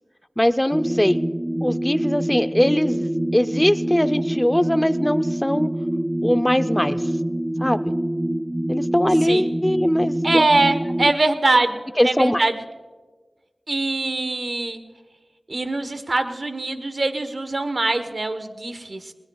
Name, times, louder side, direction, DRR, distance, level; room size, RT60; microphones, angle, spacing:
voice 1, 0.4-1.2 1.6-5.7 6.2-7.1 7.6-7.9 8.7-10.5 12.0-12.5, left 1 dB, 10° left, 12 dB, 0.6 m, -21 dB
sound 1, 0.7-11.1, right 1 dB, 25° right, 0.4 m, -25 dB
voice 2, 10.2-12.6 13.7-14.8 15.5-19.1, right 2 dB, 55° right, 9 dB, 1.1 m, -23 dB
20.5 x 19.5 x 2.4 m, 1.3 s
cardioid pair, 45°, 0 cm